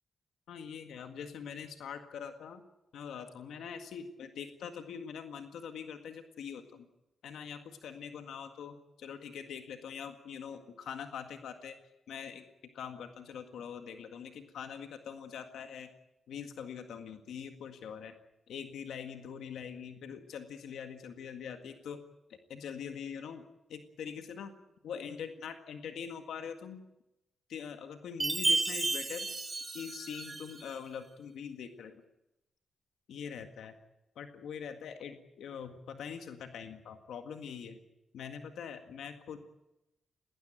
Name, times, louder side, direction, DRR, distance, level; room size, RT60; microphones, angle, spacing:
voice 1, 0.5-2.6 2.9-6.9 7.2-11.8 12.1-12.4 12.7-15.9 16.3-18.2 18.5-22.0 22.3-23.4 23.7-24.5 24.8-26.8 27.5-29.3 29.7-32.0 33.1-33.7 34.2-37.8 38.1-39.4, left 7 dB, 85° left, 6 dB, 1.8 m, -43 dB
Chime, 28.2-30.7, right 3 dB, 30° right, 2.5 m, -32 dB
19.5 x 19.0 x 9.2 m, 0.92 s
cardioid pair, 70°, 0 cm